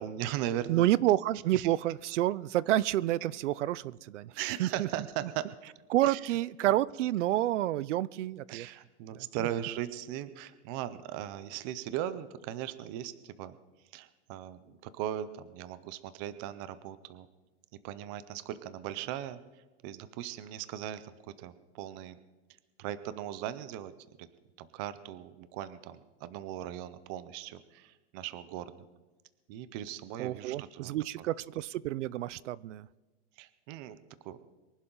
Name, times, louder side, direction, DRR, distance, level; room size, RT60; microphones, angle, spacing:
voice 1, 0.0-0.9 1.5-1.7 4.4-5.5 6.0-6.3 8.5-13.6 13.9-17.3 17.8-22.2 22.8-23.9 24.2-24.3 24.6-28.9 29.5-31.3 33.4-34.0 34.2-34.4, right 12 dB, 20° right, 14 dB, 0.3 m, -38 dB
voice 2, 0.7-4.9 5.9-8.7 9.1-9.3 30.2-32.9, right 14 dB, 80° right, 21 dB, 0.6 m, -29 dB
23.5 x 11.5 x 3.8 m, 1.2 s
supercardioid pair, 160°, 35 cm